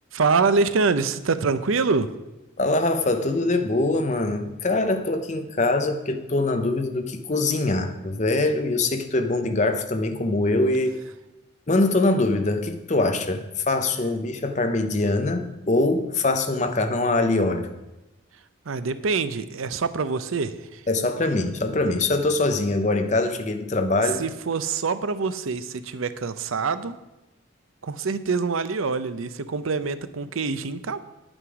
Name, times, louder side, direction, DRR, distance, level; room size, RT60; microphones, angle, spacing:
voice 1, 0.1-2.1 18.7-20.8 24.2-27.0 27.8-31.0, right 4 dB, 90° right, 13 dB, 0.6 m, -25 dB
voice 2, 2.6-10.9 11.7-17.7 20.9-24.2, left 2 dB, 35° left, 7 dB, 0.8 m, -23 dB
9.6 x 8.8 x 4.9 m, 1.0 s
head